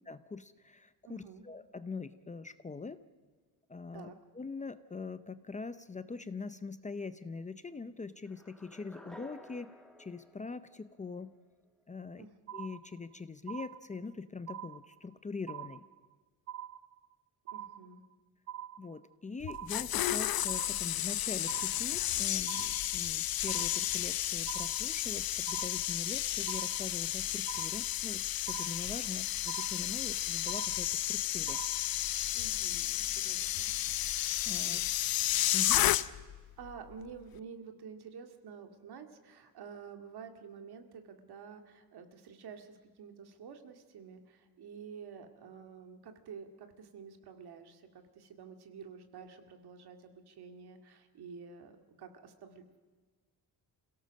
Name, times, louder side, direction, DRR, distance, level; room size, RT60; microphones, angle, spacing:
voice 1, 0.1-3.0 3.7-4.1 4.3-9.7 10.0-11.3 11.9-12.3 12.5-15.8 18.8-31.6 34.4-34.8 35.5-35.8, left 4 dB, 20° left, 12 dB, 0.5 m, -43 dB
voice 2, 1.0-1.4 3.9-4.2 12.2-12.3 17.5-18.0 32.3-33.7 34.6-35.0 36.6-52.8, right 6 dB, 80° right, 6 dB, 2.2 m, -50 dB
sound 1, 8.3-11.4, left 1 dB, ahead, 1.6 m, -54 dB
sound 2, 12.5-13.1 13.5-14.1 14.5-15.1 15.5-16.1 16.5-17.1 17.5-18.1 18.5-19.1 19.5-20.1 20.5-21.1 21.5-22.1 22.5-23.1 23.5-24.1 24.5-25.1 25.5-26.1 26.5-27.1 27.5-28.1 28.5-29.1 29.5-30.1 30.5-31.1 31.5-32.1, right 11 dB, 40° right, 0.6 m, -45 dB
sound 3, 19.4-36.4 36.6-36.9, left 13 dB, 65° left, 0.7 m, -32 dB
27.0 x 17.0 x 6.5 m, 1.4 s
wide cardioid pair, 165°, 38 cm